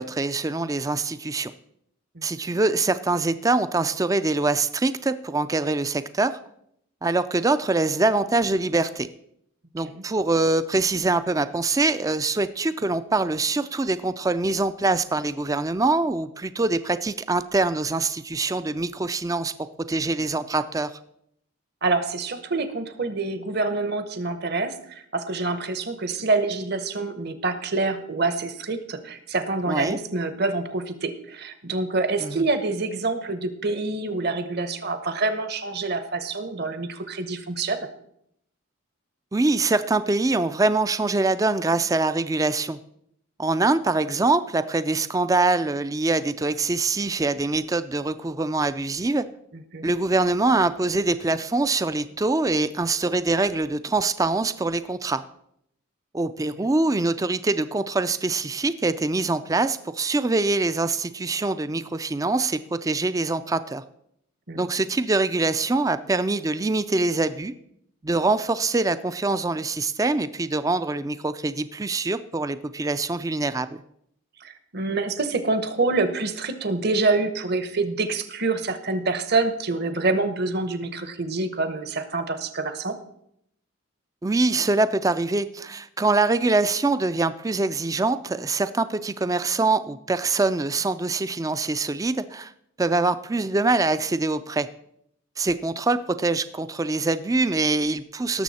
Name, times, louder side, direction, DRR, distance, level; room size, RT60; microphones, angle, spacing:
voice 1, 0.0-1.5 2.2-6.4 7.0-9.1 9.7-19.5 19.9-21.0 29.7-30.0 32.2-32.4 39.3-42.8 43.4-49.3 49.8-55.2 56.1-63.8 64.6-67.5 68.0-73.8 84.2-92.5 92.8-94.7 95.4-98.4, right 3 dB, 15° right, 13 dB, 0.3 m, -24 dB
voice 2, 21.8-37.9 49.7-49.9 64.5-64.7 74.4-83.0, right 3 dB, 50° right, 10 dB, 1.0 m, -26 dB
17.5 x 7.0 x 4.2 m, 0.73 s
head